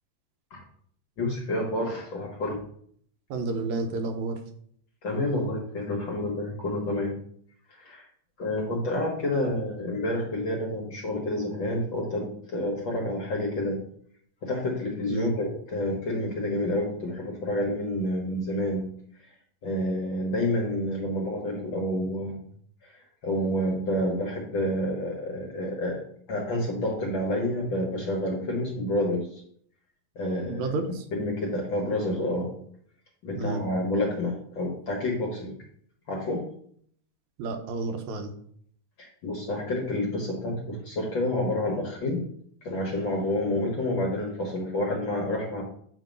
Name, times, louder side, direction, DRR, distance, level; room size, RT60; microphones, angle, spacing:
voice 1, 1.2-2.6 5.0-7.1 7.7-8.1 8.4-13.8 14.4-18.9 19.6-22.4 22.8-26.0 26.3-29.4 30.1-30.7 31.1-32.5 33.2-35.6 36.1-36.4 39.0-42.2 42.6-45.6, left 1 dB, 55° left, -1 dB, 1.4 m, -29 dB
voice 2, 3.3-4.4 15.1-15.3 30.5-31.0 33.4-33.6 37.4-38.3, right 3 dB, 80° right, 6 dB, 2.0 m, -30 dB
7.4 x 2.9 x 5.1 m, 0.63 s
omnidirectional pair, 3.4 m